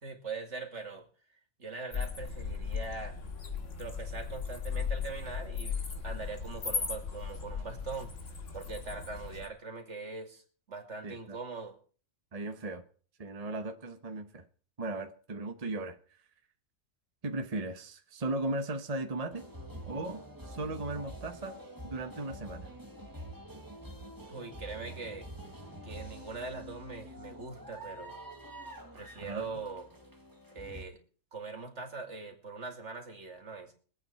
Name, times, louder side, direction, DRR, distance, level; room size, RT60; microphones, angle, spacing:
voice 1, 0.0-1.0 1.6-3.2 3.8-5.8 6.0-8.1 8.5-11.8 24.2-25.3 25.8-28.2 28.9-29.9 30.5-31.0 31.3-33.7, right 4 dB, 65° right, 2.8 m, -42 dB
sound 1, 1.9-9.5, left 5 dB, 75° left, 2.3 m, -37 dB
voice 2, 11.0-11.4 12.3-12.8 13.2-14.4 14.8-16.0 17.2-19.5 19.8-21.6 21.8-22.7 29.2-29.6, right 2 dB, 30° right, 1.0 m, -37 dB
sound 2, 19.3-30.9, right 1 dB, 15° right, 1.6 m, -46 dB
22.5 x 8.6 x 4.5 m
omnidirectional pair, 1.3 m